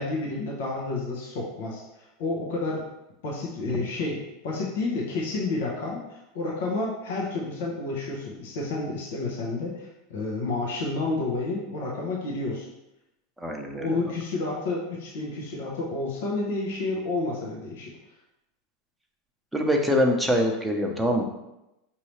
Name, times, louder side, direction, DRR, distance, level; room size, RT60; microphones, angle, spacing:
voice 1, 0.0-2.9 3.2-12.7 13.7-17.9, left 3 dB, 70° left, -3 dB, 0.9 m, -30 dB
voice 2, 13.4-14.0 19.5-21.3, equal, 5° right, 1 dB, 0.8 m, -24 dB
5.3 x 2.8 x 3.1 m, 0.91 s
hypercardioid pair, 95°, 0 cm